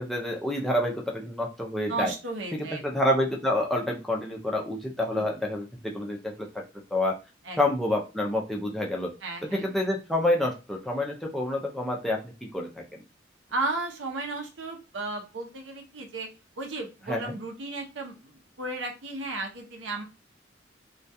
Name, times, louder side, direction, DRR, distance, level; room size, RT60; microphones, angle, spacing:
voice 1, 0.0-2.1 2.5-6.5 6.9-7.2 7.6-9.1 9.5-13.0 17.1-17.4, left 1 dB, ahead, -1 dB, 0.4 m, -28 dB
voice 2, 1.9-2.8 7.4-7.6 9.2-9.6 13.5-16.3 16.6-18.3 18.6-20.0, right 2 dB, 80° right, 3 dB, 0.7 m, -34 dB
2.3 x 2.2 x 2.6 m, 0.30 s
head